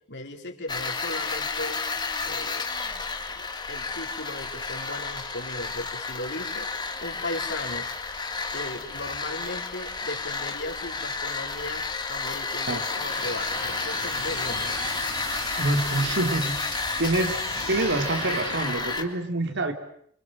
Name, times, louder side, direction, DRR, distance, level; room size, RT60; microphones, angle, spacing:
voice 1, 0.1-1.8 2.2-2.7 3.3-6.7 7.0-7.9 8.5-14.7, left 1 dB, 55° left, 3 dB, 4.3 m, -37 dB
sound 1, 0.7-19.0, left 4 dB, 20° left, 2.2 m, -31 dB
sound 2, 12.7-19.1, right 4 dB, 90° right, 3.7 m, -37 dB
voice 2, 15.6-17.4 17.7-19.7, right 2 dB, 55° right, 6 dB, 3.3 m, -26 dB
28.0 x 25.5 x 7.7 m, 0.67 s
head